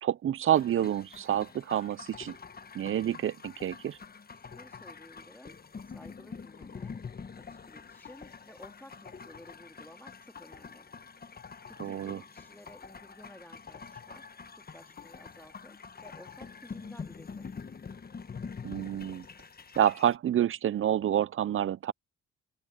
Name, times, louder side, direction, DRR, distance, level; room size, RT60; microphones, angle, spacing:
voice 1, 0.0-2.4 2.7-4.0 11.8-12.2 18.6-19.3 19.8-21.9, right 10 dB, 45° right, 0.5 m, -28 dB
sound 1, 0.5-20.2, left 5 dB, 30° left, 1.2 m, -46 dB
voice 2, 4.3-7.0 7.4-10.9 11.7-17.5, left 1 dB, 5° left, 3.0 m, -54 dB
cardioid pair, 90°, 30 cm